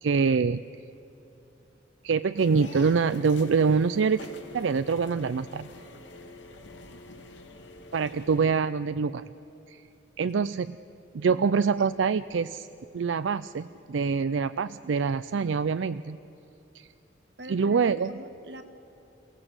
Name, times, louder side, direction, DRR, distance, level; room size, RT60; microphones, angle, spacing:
voice 1, 0.0-0.6 2.0-5.7 7.9-9.2 9.7-9.8 10.2-10.8 11.1-12.7 12.9-16.2 16.7-16.9 17.5-18.2, right 5 dB, 85° right, 13 dB, 0.4 m, -25 dB
sound 1, 2.4-8.5, left 2 dB, 80° left, 2.3 m, -45 dB
voice 2, 17.4-18.6, right 1 dB, 60° right, 7 dB, 1.8 m, -43 dB
29.0 x 17.0 x 8.0 m, 3.0 s
head